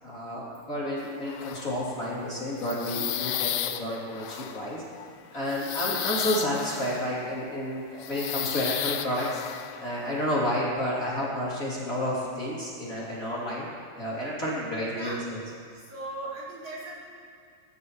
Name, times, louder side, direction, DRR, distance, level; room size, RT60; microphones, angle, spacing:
voice 1, 0.0-4.8 5.3-9.4 9.8-13.7 14.0-15.2, equal, 25° left, -8 dB, 3.5 m, -30 dB
sound 1, 1.0-2.0 2.3-7.4 8.0-10.3, left 11 dB, 80° left, 1.6 m, -34 dB
voice 2, 15.7-16.9, right 1 dB, 70° right, -8 dB, 6.2 m, -38 dB
26.0 x 13.5 x 3.2 m, 2.2 s
omnidirectional pair, 3.3 m